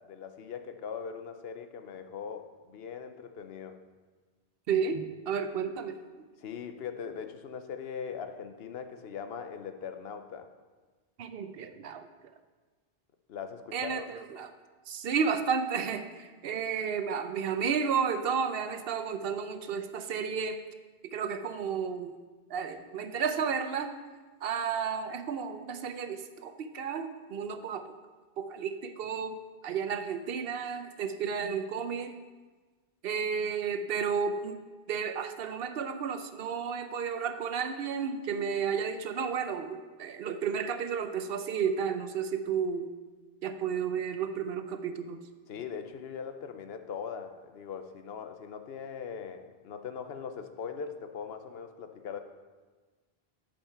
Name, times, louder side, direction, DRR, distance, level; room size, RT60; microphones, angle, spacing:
voice 1, 0.0-3.8 6.4-10.5 13.3-14.1 45.5-52.2, left 6 dB, 75° left, 8 dB, 0.9 m, -40 dB
voice 2, 4.7-6.0 11.2-12.1 13.7-14.5 14.9-20.6 21.1-22.2 22.5-24.0 24.4-27.9 28.4-29.4 29.6-32.2 33.0-34.6 34.9-42.9 43.4-45.2, right 6 dB, 70° right, 9 dB, 0.8 m, -32 dB
8.6 x 5.2 x 5.6 m, 1.3 s
omnidirectional pair, 1.0 m